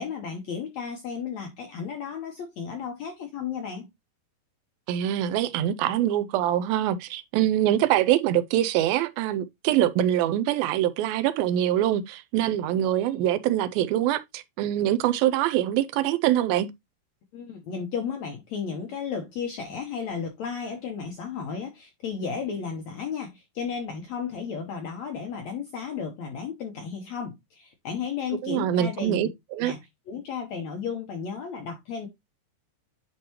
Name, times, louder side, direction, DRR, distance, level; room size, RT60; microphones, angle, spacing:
voice 1, 0.0-3.9 17.3-29.3 29.6-32.1, left 6 dB, 75° left, 1.7 m, -34 dB
voice 2, 4.9-16.7 28.4-29.7, right 12 dB, 80° right, 2.3 m, -24 dB
10.0 x 4.6 x 3.0 m
omnidirectional pair, 4.6 m